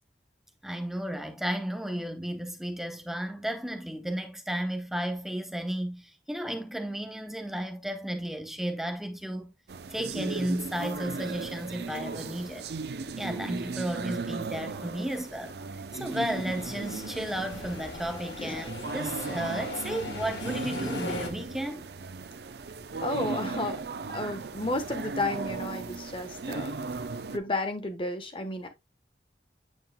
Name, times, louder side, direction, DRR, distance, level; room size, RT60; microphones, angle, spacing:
voice 1, 0.6-9.5 9.9-12.7 13.2-21.9, right 1 dB, ahead, 0.8 m, -33 dB
sound 1, 9.7-27.4, right 4 dB, 65° right, 0.5 m, -37 dB
sound 2, 16.1-21.3, left 3 dB, 80° left, 2.0 m, -40 dB
voice 2, 23.0-23.8 24.1-26.8 27.3-28.7, left 2 dB, 30° left, 1.1 m, -32 dB
9.2 x 5.6 x 2.2 m
head